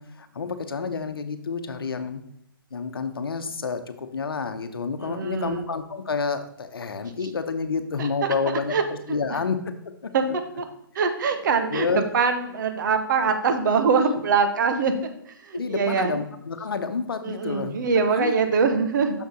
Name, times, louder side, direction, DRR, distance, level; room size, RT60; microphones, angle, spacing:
voice 1, 0.0-2.2 2.7-8.8 9.1-9.7 10.0-10.1 11.7-12.0 13.9-14.2 15.5-17.8 18.1-18.3, left 5 dB, 80° left, 9 dB, 0.9 m, -29 dB
voice 2, 5.0-5.6 8.0-8.1 8.7-8.8 10.1-10.2 10.6-10.7 10.9-14.9 15.5-16.2 17.2-19.3, right 5 dB, 55° right, 7 dB, 1.1 m, -23 dB
6.4 x 5.9 x 4.2 m, 0.78 s
hypercardioid pair, 140°, 12 cm